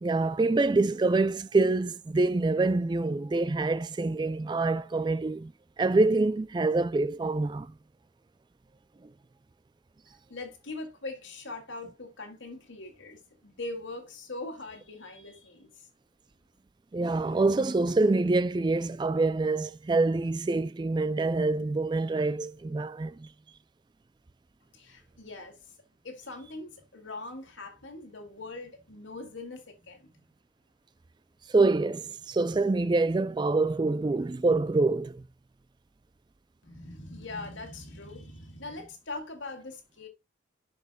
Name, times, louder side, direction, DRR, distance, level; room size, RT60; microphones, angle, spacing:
voice 1, 0.0-5.5 5.8-7.7 16.9-23.3 31.5-35.2, right 3 dB, 25° right, 0.3 m, -26 dB
voice 2, 10.3-15.9 24.7-25.7 26.0-30.1 36.6-40.1, left 2 dB, 90° left, 2.3 m, -41 dB
12.0 x 5.1 x 2.2 m
head